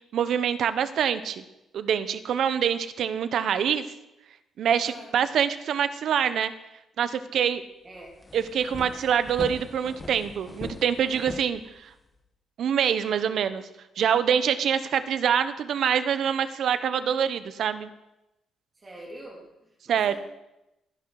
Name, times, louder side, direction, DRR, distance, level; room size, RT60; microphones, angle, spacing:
voice 1, 0.1-1.4 1.7-3.8 4.6-6.5 7.0-7.6 8.3-11.9 12.6-13.7 14.0-17.9 19.9-20.2, right 8 dB, 60° right, 12 dB, 1.0 m, -25 dB
voice 2, 4.8-5.1 7.8-8.2 18.7-20.2, right 1 dB, 25° right, -2 dB, 2.9 m, -43 dB
sound 1, 7.6-7.7 8.0-12.2, left 2 dB, 15° left, 1.5 m, -41 dB
17.0 x 10.5 x 4.8 m, 0.93 s
cardioid pair, 145°, 0 cm